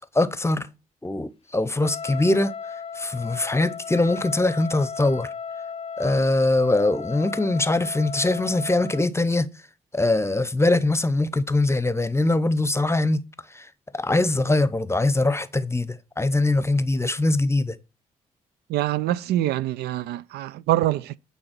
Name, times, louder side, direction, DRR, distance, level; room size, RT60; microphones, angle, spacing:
voice 1, 0.1-0.7 1.0-2.5 2.9-5.3 6.0-9.5 9.9-13.2 13.5-13.7 13.9-17.8, left 2 dB, 15° left, 0.8 m, -22 dB
Trumpet, 1.7-9.1, left 6 dB, 30° left, 0.4 m, -35 dB
voice 2, 18.7-21.2, right 14 dB, 65° right, 0.4 m, -25 dB
8.8 x 4.1 x 6.2 m
hypercardioid pair, 40°, 18 cm